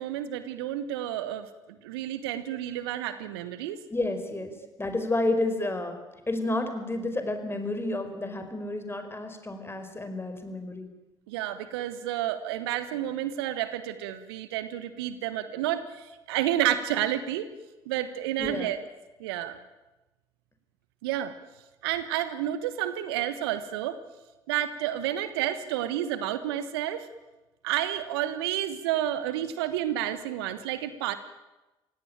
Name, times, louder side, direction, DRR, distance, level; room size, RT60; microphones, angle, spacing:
voice 1, 0.0-3.8 11.3-17.5 17.8-18.8 19.2-19.6 21.0-21.3 21.8-24.0 24.5-27.1 27.6-31.1, right 12 dB, 75° right, 13 dB, 1.3 m, -30 dB
voice 2, 3.9-6.0 6.3-10.9 18.4-18.7, left 2 dB, 20° left, 7 dB, 4.9 m, -30 dB
27.5 x 17.5 x 8.9 m, 1.1 s
figure-of-eight pair, 45°, 13 cm